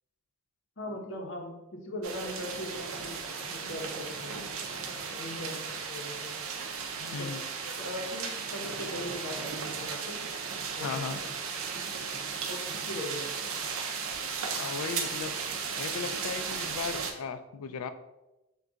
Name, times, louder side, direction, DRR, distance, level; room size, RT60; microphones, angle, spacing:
voice 1, 0.8-3.2 3.5-4.5 4.9-6.3 7.0-7.3 7.6-10.2 10.8-11.3 11.7-11.8 12.4-13.6, left 1 dB, 55° left, 1 dB, 0.7 m, -40 dB
sound 1, 2.0-17.1, right 5 dB, 75° right, 0.5 m, -36 dB
voice 2, 7.1-7.4 10.8-11.2 14.4-15.3 15.8-17.9, left 6 dB, 90° left, 10 dB, 0.3 m, -36 dB
3.5 x 2.3 x 3.8 m, 0.99 s
head